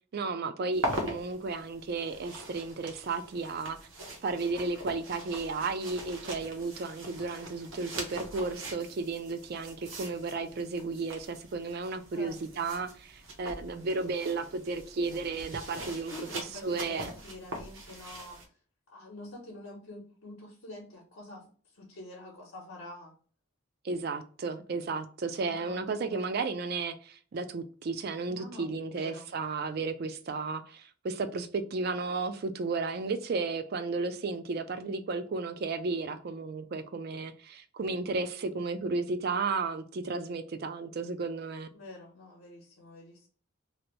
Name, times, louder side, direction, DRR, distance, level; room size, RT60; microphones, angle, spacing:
voice 1, 0.1-3.8 4.2-16.3 16.6-17.1 23.8-41.7, right 3 dB, 45° right, 0.3 m, -33 dB
sound 1, 0.7-18.5, right 1 dB, 65° right, 0.8 m, -42 dB
voice 2, 12.1-12.6 16.1-18.5 18.9-23.1 25.3-26.6 28.3-29.3 41.7-43.3, left 1 dB, 70° left, 0.8 m, -47 dB
2.7 x 2.5 x 3.0 m
head